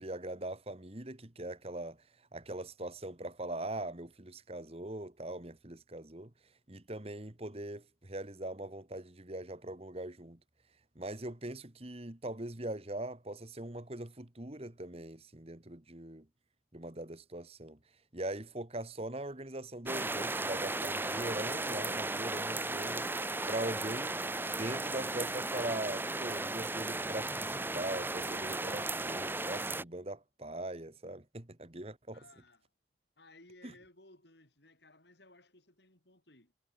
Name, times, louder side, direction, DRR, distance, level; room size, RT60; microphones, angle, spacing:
voice 1, 0.0-2.0 2.3-6.3 6.7-10.4 11.0-16.3 16.7-17.8 18.1-23.1 23.5-24.1 24.5-32.2, right 1 dB, 30° right, 1.7 m, -41 dB
sound 1, 19.9-29.8, right 2 dB, 10° right, 1.1 m, -35 dB
voice 2, 32.1-32.7 33.2-36.5, left 2 dB, 60° left, 6.7 m, -60 dB
head